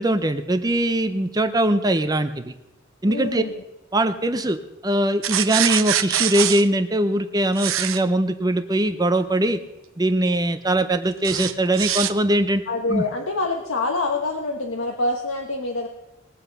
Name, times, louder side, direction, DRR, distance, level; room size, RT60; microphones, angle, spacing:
voice 1, 0.0-2.5 3.0-3.4 3.9-9.6 10.0-12.6 12.9-13.0, right 1 dB, 20° right, 9 dB, 0.6 m, -21 dB
voice 2, 3.0-3.6 12.7-15.9, left 2 dB, 80° left, 2 dB, 1.2 m, -26 dB
sound 1, 5.2-6.6 7.6-8.0 11.2-12.1, right 11 dB, 85° right, 0.8 m, -24 dB
20.5 x 8.0 x 5.3 m, 1.0 s
head